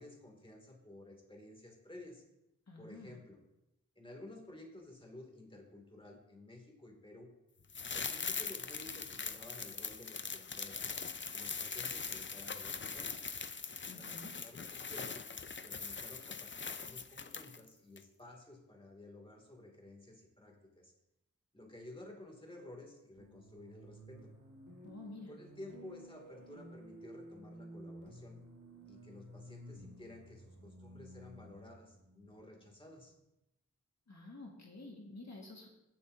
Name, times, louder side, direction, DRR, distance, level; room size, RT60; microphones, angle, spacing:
voice 1, 0.0-2.2 2.8-3.4 4.0-7.3 7.9-10.9 11.3-13.1 13.9-15.3 15.6-20.9 21.5-24.3 25.3-28.4 28.9-33.1, left 1 dB, 15° left, 1 dB, 2.4 m, -53 dB
voice 2, 2.7-3.2 13.8-14.3 24.8-25.3 34.1-35.7, left 2 dB, 60° left, -1 dB, 1.7 m, -50 dB
sound 1, 7.7-17.7 18.0-18.1, left 5 dB, 40° left, 0.5 m, -41 dB
sound 2, 23.2-33.1, right 1 dB, 75° right, 1.5 m, -54 dB
17.5 x 7.1 x 2.7 m, 0.91 s
wide cardioid pair, 70°, 30 cm